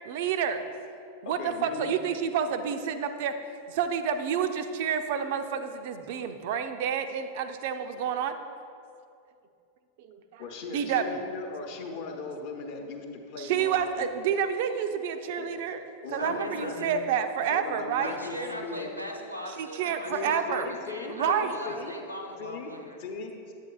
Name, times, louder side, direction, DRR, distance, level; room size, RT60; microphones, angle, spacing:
voice 1, 0.1-0.6 1.2-3.4 3.7-8.3 10.1-10.4 10.7-11.2 13.4-15.8 16.1-18.1 19.6-20.7 21.1-21.6, right 7 dB, 50° right, 8 dB, 0.4 m, -29 dB
voice 2, 1.4-1.9 10.4-14.1 14.6-14.7 15.4-15.5 16.0-16.7 17.5-18.9 20.1-21.9 22.4-22.7 23.0-23.5, left 4 dB, 50° left, 3 dB, 0.7 m, -38 dB
voice 3, 16.2-17.0 18.0-23.0, equal, 90° right, 3 dB, 0.7 m, -39 dB
8.2 x 8.1 x 2.3 m, 2.5 s
figure-of-eight pair, 90°, 0 cm